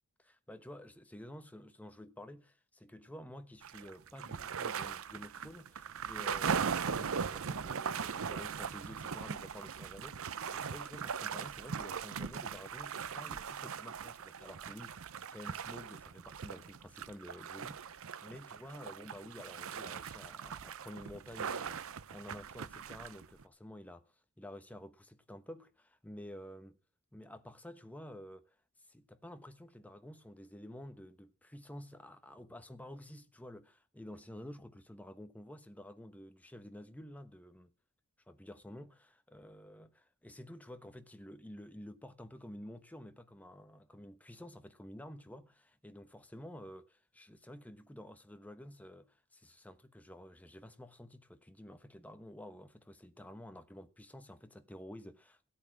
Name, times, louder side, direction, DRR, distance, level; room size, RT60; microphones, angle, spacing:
voice 1, 0.2-26.8 27.1-28.5 28.9-37.7 38.3-55.5, left 1 dB, 5° left, 1.1 m, -51 dB
sound 1, 3.6-23.4, right 6 dB, 65° right, 0.7 m, -40 dB
16.0 x 8.7 x 6.1 m
head